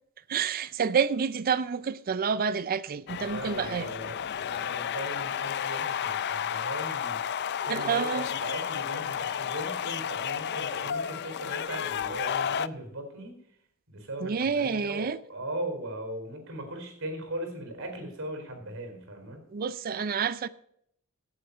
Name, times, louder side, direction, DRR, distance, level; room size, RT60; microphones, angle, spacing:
voice 1, 0.3-3.9 7.6-8.3 14.2-15.2 19.5-20.5, right 6 dB, 45° right, 0.4 m, -28 dB
sound 1, 3.1-12.7, left 8 dB, 55° left, 0.4 m, -32 dB
voice 2, 3.2-4.2 4.4-13.4 13.9-19.4, right 1 dB, 70° right, 4.5 m, -38 dB
17.0 x 8.0 x 4.2 m
head